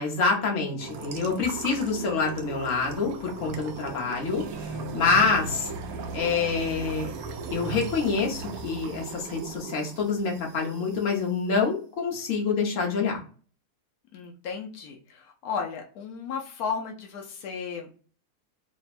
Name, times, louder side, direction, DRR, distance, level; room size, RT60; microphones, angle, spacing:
voice 1, 0.0-5.7 6.1-7.1 7.5-13.2, left 4 dB, 60° left, -1 dB, 1.3 m, -26 dB
sound 1, 0.8-11.2, right 4 dB, 80° right, 1.1 m, -37 dB
voice 2, 14.1-17.9, left 6 dB, 90° left, 1 dB, 1.2 m, -34 dB
3.4 x 2.1 x 4.0 m, 0.41 s
omnidirectional pair, 1.5 m